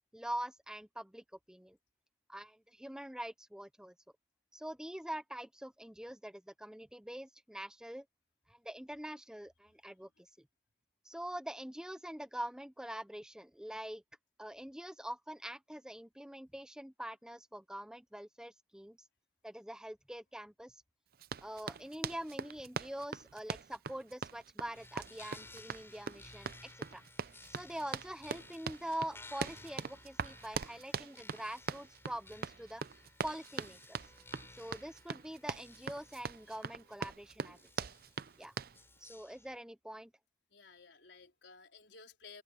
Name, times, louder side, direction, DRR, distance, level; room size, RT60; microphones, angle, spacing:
voice 1, 0.1-1.8 2.3-3.9 4.5-8.0 8.5-10.3 11.0-14.0 14.4-19.0 19.4-20.8 21.4-27.0 27.5-32.8 33.2-34.0 34.6-37.9 38.4-38.5 39.0-40.1, right 1 dB, 5° right, 0.6 m, -44 dB
Run, 21.2-38.8, right 5 dB, 55° right, 0.5 m, -42 dB
sound 1, 24.7-39.6, left 2 dB, 15° left, 6.1 m, -57 dB
voice 2, 40.5-42.4, left 4 dB, 85° left, 3.8 m, -56 dB
open air
head